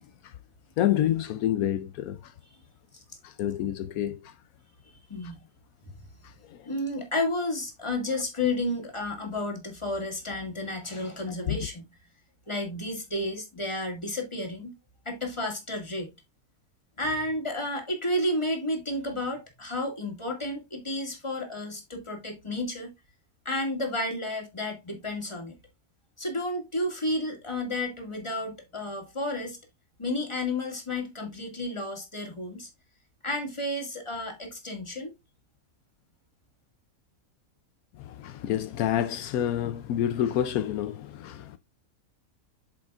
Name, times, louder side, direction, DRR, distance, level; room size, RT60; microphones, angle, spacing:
voice 1, 0.8-2.2 3.2-4.3 6.5-6.6 11.5-11.6 38.0-41.6, left 11 dB, 80° left, 1.0 m, -28 dB
voice 2, 5.1-5.4 5.9-6.0 6.7-11.9 12.5-14.7 15.1-16.1 17.0-22.9 23.5-25.6 26.2-29.6 30.0-32.7 33.2-35.1, left 1 dB, 20° left, 2.1 m, -31 dB
8.6 x 6.7 x 2.4 m
omnidirectional pair, 1.5 m